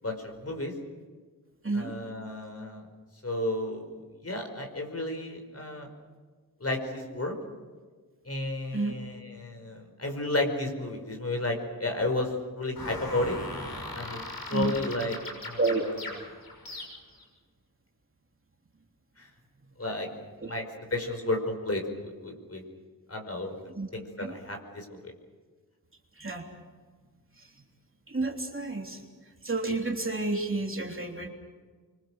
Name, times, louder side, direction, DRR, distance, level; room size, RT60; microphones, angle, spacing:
voice 1, 0.0-0.7 1.7-2.9 3.2-5.9 6.6-7.4 8.3-13.4 13.9-15.2 15.4-15.6 19.2-19.3 19.8-20.1 20.4-20.7 20.9-22.6 23.1-23.5 23.9-25.1, left 2 dB, 40° left, 4 dB, 5.2 m, -32 dB
voice 2, 1.6-1.9 8.7-8.9 14.5-14.7 15.6-15.8 16.1-16.3 20.4-20.5 23.7-23.9 24.2-24.4 26.2-26.4 27.3-27.5 28.1-29.0 29.4-31.3, right 3 dB, 35° right, 2 dB, 3.3 m, -30 dB
sound 1, 12.8-17.2, left 1 dB, 75° left, 6.8 m, -39 dB
26.0 x 24.5 x 6.5 m, 1.5 s
wide cardioid pair, 80°, 36 cm